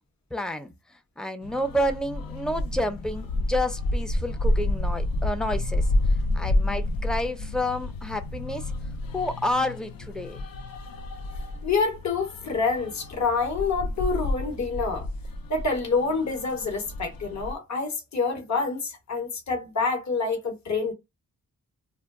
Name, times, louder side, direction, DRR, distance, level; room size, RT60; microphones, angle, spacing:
voice 1, 0.3-0.7 1.2-5.9 6.3-8.6 9.1-10.4, left 1 dB, ahead, 0.4 m, -29 dB
sound 1, 1.4-17.5, left 1 dB, 75° left, 0.5 m, -30 dB
voice 2, 11.6-15.1 15.5-20.9, left 4 dB, 50° left, 1.1 m, -27 dB
2.2 x 2.2 x 3.5 m
cardioid pair, 80°, 35 cm